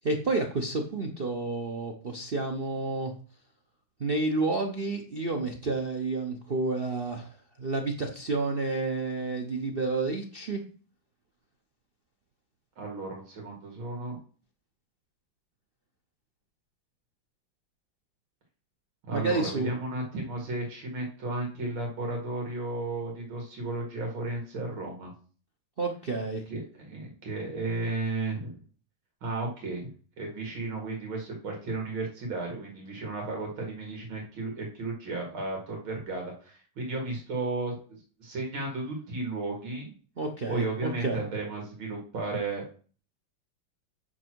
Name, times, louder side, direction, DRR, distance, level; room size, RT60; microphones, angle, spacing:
voice 1, 0.0-3.1 4.0-10.6 19.1-19.7 25.8-26.4 40.2-41.2, right 3 dB, 40° right, 3 dB, 0.8 m, -30 dB
voice 2, 12.8-14.2 19.1-25.1 26.5-28.6 29.2-29.9 30.2-37.7 38.2-39.9 40.5-42.6, right 2 dB, 85° right, 0 dB, 2.9 m, -34 dB
8.8 x 6.1 x 4.6 m, 0.41 s
omnidirectional pair, 2.2 m